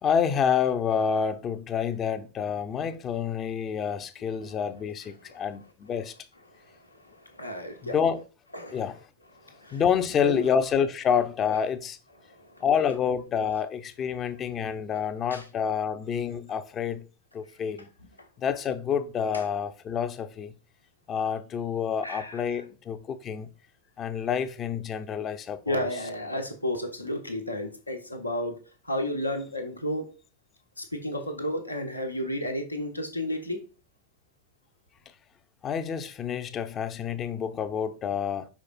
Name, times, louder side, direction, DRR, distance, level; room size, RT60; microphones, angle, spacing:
voice 1, 0.0-6.1 7.8-8.2 8.7-9.0 9.7-12.0 12.6-17.0 17.3-17.9 18.4-20.5 21.1-23.5 24.0-25.9 35.6-38.5, left 7 dB, 25° left, 0.7 m, -28 dB
voice 2, 6.5-7.9 8.5-8.8 9.4-9.8 10.2-10.5 12.3-12.6 15.3-15.4 19.3-19.4 22.0-22.4 25.7-28.6 28.8-30.1 30.8-33.6, left 1 dB, 85° left, 1.3 m, -32 dB
5.8 x 4.8 x 4.4 m
figure-of-eight pair, 90°, 0 cm